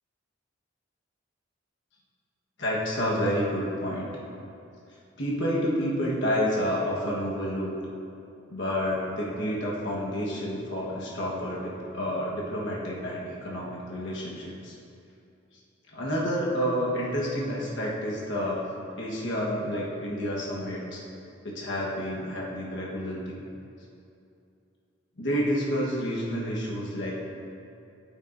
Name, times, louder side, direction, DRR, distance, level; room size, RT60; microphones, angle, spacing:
voice 1, 2.6-4.1 5.2-7.7 8.5-14.8 15.9-18.7 19.0-21.0 21.4-23.3 25.2-27.1, equal, 65° left, -5 dB, 1.2 m, -29 dB
9.3 x 8.6 x 2.6 m, 2.7 s
head